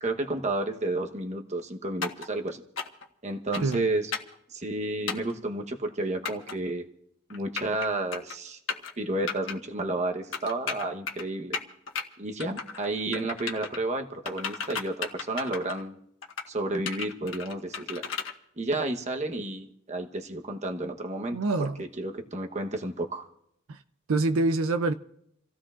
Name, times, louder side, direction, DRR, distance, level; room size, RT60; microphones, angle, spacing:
voice 1, 0.0-2.6 3.2-4.1 4.5-6.9 7.3-8.6 9.0-11.6 12.2-16.0 16.5-18.0 18.6-21.4 21.8-23.3, right 2 dB, 35° right, 1.0 m, -31 dB
sound 1, 2.0-2.3 2.8-3.1 3.5-3.8 4.1-4.4 5.1-5.3 6.3-6.5 7.3-7.9 8.1-8.4 8.7-8.9 9.3-9.6 10.3-11.2 11.5-12.0 12.4-12.9 13.1-13.8 14.3-15.8 16.2-16.5 16.9-18.3, left 6 dB, 65° left, 1.4 m, -34 dB
voice 2, 21.3-21.8 23.7-23.8 24.1-24.9, right 3 dB, 80° right, 0.5 m, -26 dB
29.0 x 15.5 x 2.5 m
head